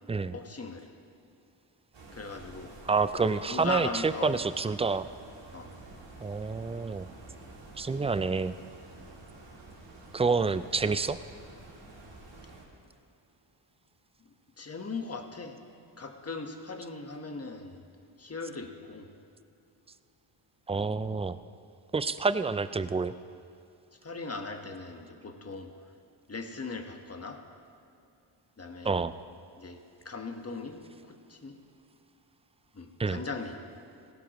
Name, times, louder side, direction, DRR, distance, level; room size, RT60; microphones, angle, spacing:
voice 1, 0.3-0.9 2.1-2.7 3.5-4.5 5.5-5.7 14.2-15.6 16.0-17.8 18.2-19.1 24.0-25.7 26.3-27.4 28.6-28.9 29.6-31.6 32.7-33.6, left 4 dB, 30° left, 4 dB, 1.4 m, -39 dB
sound 1, 1.9-12.6, right 2 dB, 60° right, 2.9 m, -49 dB
voice 2, 2.8-5.1 6.2-7.1 7.8-8.5 10.1-11.2 20.7-21.4 21.9-23.1 28.8-29.1 33.0-33.2, right 4 dB, 15° right, 13 dB, 0.3 m, -28 dB
19.0 x 16.5 x 3.1 m, 2.5 s
cardioid pair, 80°, 48 cm